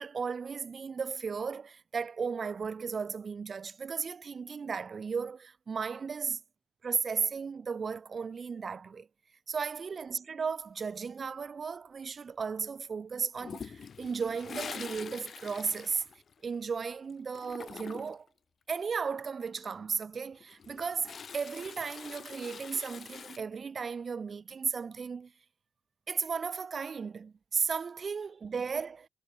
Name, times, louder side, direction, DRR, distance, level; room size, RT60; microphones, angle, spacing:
voice 1, 0.0-6.4 6.8-9.1 9.5-16.0 16.4-18.3 18.7-25.3 26.1-29.1, right 5 dB, 40° right, 1.0 m, -35 dB
Toilet flush, 13.4-16.8 17.1-18.3 20.3-23.4, left 6 dB, 45° left, 1.5 m, -45 dB
cardioid pair, 90°, 0 cm